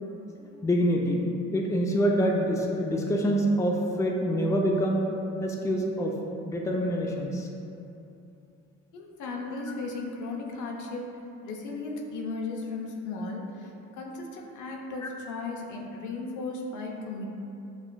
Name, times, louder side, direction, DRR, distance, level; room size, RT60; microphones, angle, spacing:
voice 1, 0.6-1.2 1.5-5.0 5.4-6.1 6.4-7.5 15.0-15.1, equal, 10° left, 0 dB, 0.4 m, -26 dB
voice 2, 8.9-11.1 11.4-13.4 14.0-17.3, left 3 dB, 80° left, 0 dB, 0.6 m, -35 dB
6.9 x 2.4 x 2.2 m, 2.8 s
cardioid pair, 90°, 30 cm